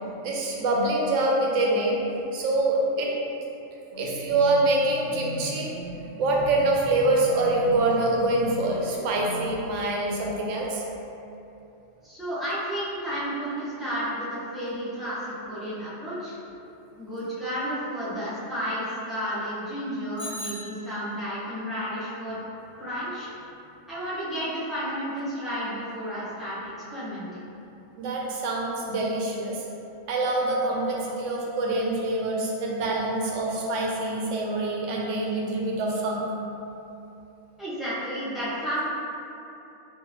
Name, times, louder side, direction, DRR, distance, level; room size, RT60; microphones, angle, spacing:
voice 1, 0.2-2.0 2.3-3.1 3.9-5.8 6.2-10.8 28.0-29.6 30.1-36.3, right 2 dB, 70° right, -2 dB, 0.9 m, -25 dB
sound 1, 3.9-9.7, equal, 80° left, 1.0 m, -38 dB
voice 2, 12.0-16.4 17.0-22.4 22.8-23.3 23.9-27.3 37.6-38.9, equal, ahead, -13 dB, 0.9 m, -32 dB
Bicycle bell, 20.2-21.4, left 1 dB, 40° left, 0.8 m, -39 dB
3.7 x 2.7 x 2.9 m, 2.9 s
omnidirectional pair, 1.4 m